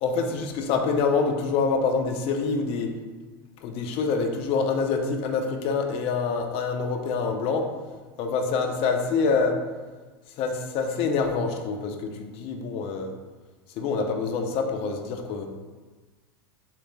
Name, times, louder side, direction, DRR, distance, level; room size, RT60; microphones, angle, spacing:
voice 1, 0.0-2.9 3.6-7.7 8.2-9.6 10.4-13.1 13.8-15.5, left 4 dB, 50° left, 3 dB, 0.6 m, -26 dB
3.2 x 3.2 x 3.1 m, 1.3 s
hypercardioid pair, 100°, 13 cm